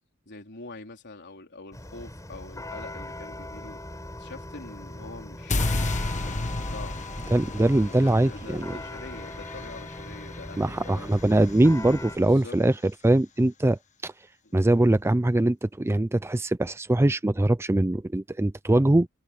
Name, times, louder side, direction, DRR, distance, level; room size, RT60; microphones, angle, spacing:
voice 1, 0.3-3.8 4.2-7.0 8.0-11.2 12.2-12.6, left 3 dB, 55° left, 3.9 m, -44 dB
sound 1, 1.7-12.2, left 1 dB, 15° left, 4.9 m, -40 dB
sound 2, 5.5-11.7, left 2 dB, 35° left, 1.4 m, -32 dB
voice 2, 7.3-8.8 10.6-14.1 14.5-19.1, right 1 dB, 10° right, 0.4 m, -22 dB
head